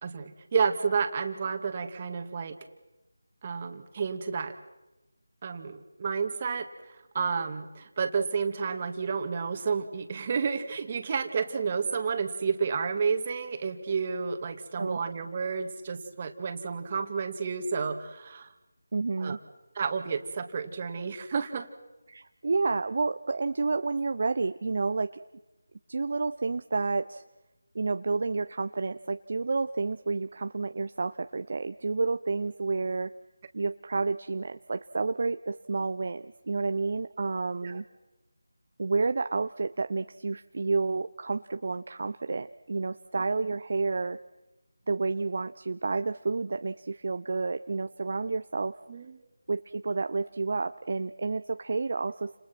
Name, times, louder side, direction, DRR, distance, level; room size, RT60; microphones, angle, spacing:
voice 1, 0.0-2.6 3.4-4.5 5.4-6.7 7.1-18.5 19.2-19.4 19.8-21.7 37.6-37.8 43.4-43.5 48.9-49.2, right 5 dB, 30° right, 8 dB, 2.3 m, -31 dB
voice 2, 18.9-19.4 22.1-25.2 25.9-27.2 27.7-33.1 33.5-37.8 38.8-44.2 44.9-48.8 49.5-52.4, right 3 dB, 50° right, 10 dB, 0.8 m, -30 dB
30.0 x 28.0 x 6.1 m, 1.0 s
figure-of-eight pair, 165°, 0 cm